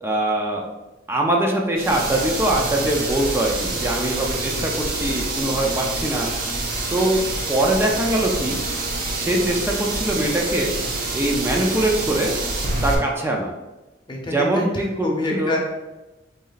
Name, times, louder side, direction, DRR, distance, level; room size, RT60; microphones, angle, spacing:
voice 1, 0.0-0.6 1.1-6.3 6.9-7.2 7.5-8.6 9.1-10.7 11.1-12.4 12.8-13.5 14.3-15.6, right 1 dB, 15° right, 0 dB, 0.5 m, -22 dB
sound 1, 1.8-12.9, right 2 dB, 55° right, 0.8 m, -27 dB
voice 2, 14.1-15.6, left 2 dB, 25° left, 0 dB, 0.8 m, -27 dB
4.2 x 3.1 x 3.9 m, 1.1 s
head